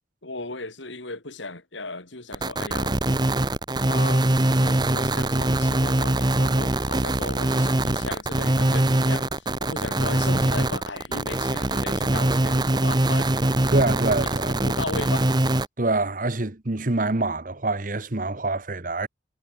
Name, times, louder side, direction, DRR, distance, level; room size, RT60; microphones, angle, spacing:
voice 1, 0.2-3.0 3.9-4.3 4.6-13.7 14.2-14.3 14.6-15.5, left 3 dB, 80° left, 4.1 m, -36 dB
sound 1, 2.3-15.7, right 1 dB, 20° right, 1.0 m, -23 dB
voice 2, 13.7-14.6 15.8-19.1, right 2 dB, 45° right, 1.3 m, -25 dB
head